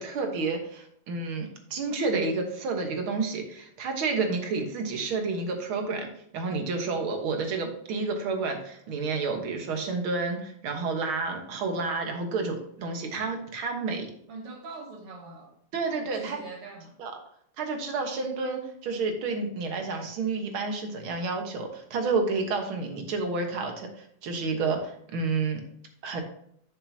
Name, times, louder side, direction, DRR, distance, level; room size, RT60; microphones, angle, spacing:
voice 1, 0.0-14.1 15.7-16.4 17.0-17.1 17.6-25.6 26.0-26.2, right 4 dB, 70° right, 2.1 m, -30 dB
voice 2, 14.3-15.6 16.0-16.9, right 3 dB, 85° right, 2.6 m, -43 dB
10.0 x 6.5 x 2.8 m
omnidirectional pair, 2.4 m